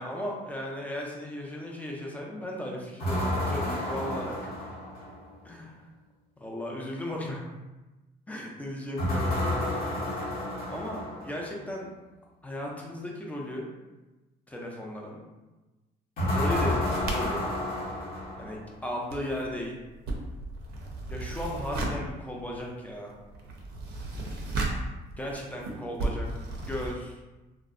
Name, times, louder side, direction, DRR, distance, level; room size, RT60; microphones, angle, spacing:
voice 1, 0.0-4.3 5.4-5.9 6.4-7.5 8.3-9.4 10.7-11.9 12.4-13.7 14.5-15.2 16.3-17.5 18.4-19.8 21.1-23.1 25.2-27.2, left 1 dB, 10° left, -2 dB, 0.5 m, -36 dB
sound 1, 3.0-5.3 9.0-11.5 16.2-18.8, left 1 dB, 65° left, 0.8 m, -30 dB
sound 2, 16.5-18.7 19.0-26.9, right 2 dB, 70° right, 0.5 m, -35 dB
2.5 x 2.0 x 2.4 m, 1.1 s
cardioid pair, 110°, 17 cm